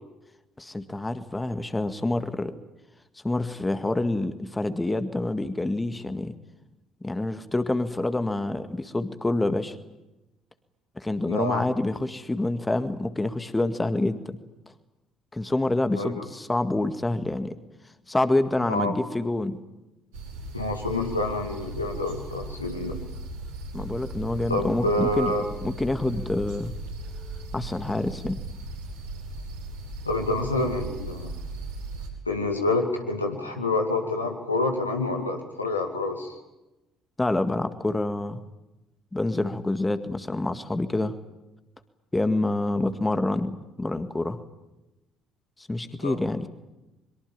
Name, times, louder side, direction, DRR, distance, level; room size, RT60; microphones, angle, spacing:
voice 1, 0.6-2.5 3.2-6.3 7.0-9.8 11.0-14.4 15.3-17.5 18.1-19.6 23.7-25.3 25.6-26.7 27.5-28.4 37.2-38.4 39.1-41.1 42.1-44.4 45.6-46.5, left 2 dB, 15° left, 10 dB, 1.9 m, -27 dB
voice 2, 11.3-11.7 15.9-16.3 18.7-18.9 20.5-23.0 24.5-25.5 30.0-31.4 32.3-36.4 46.0-46.2, left 2 dB, 90° left, 2 dB, 2.4 m, -27 dB
sound 1, 20.1-32.1, right 2 dB, 75° right, 5.5 m, -37 dB
23.5 x 23.0 x 8.8 m, 0.98 s
figure-of-eight pair, 50°, 0 cm